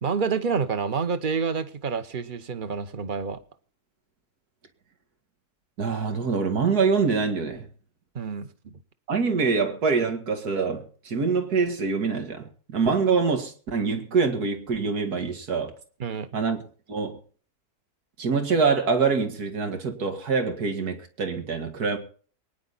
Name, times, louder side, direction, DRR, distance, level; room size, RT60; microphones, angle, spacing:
voice 1, 0.0-3.4 8.1-8.8 16.0-16.3, right 5 dB, 35° right, 1.2 m, -28 dB
voice 2, 5.8-7.7 9.1-15.7 16.3-16.6 16.9-17.2 18.2-22.0, right 5 dB, 85° right, 2.5 m, -25 dB
22.5 x 10.5 x 4.1 m
omnidirectional pair, 1.6 m